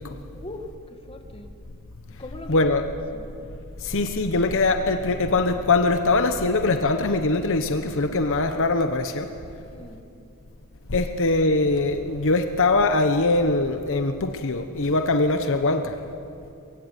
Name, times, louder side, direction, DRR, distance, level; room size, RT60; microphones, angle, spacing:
voice 1, 0.3-1.5 2.2-2.7 3.1-3.3 7.8-8.4 9.6-10.0, left 1 dB, 25° left, 5 dB, 1.8 m, -41 dB
voice 2, 2.5-2.8 3.8-9.3 10.9-16.0, left 2 dB, 60° left, 7 dB, 1.1 m, -22 dB
23.5 x 22.0 x 9.3 m, 2.7 s
head